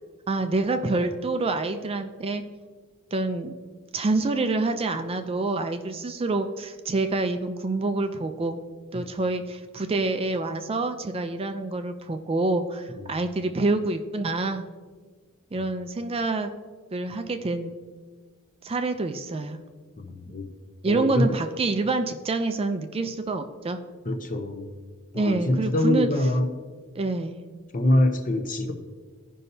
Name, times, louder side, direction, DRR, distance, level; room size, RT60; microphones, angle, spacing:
voice 1, 0.3-2.4 3.1-3.6 3.9-8.6 8.9-14.6 15.5-16.5 16.9-17.7 18.6-19.6 20.8-23.8 25.1-26.1 27.0-27.4, right 3 dB, 25° right, 7 dB, 0.4 m, -27 dB
voice 2, 20.0-20.5 20.8-21.3 24.0-24.7 25.1-26.5 27.7-28.7, left 1 dB, 40° left, 5 dB, 0.8 m, -24 dB
15.5 x 5.5 x 2.7 m, 1.5 s
head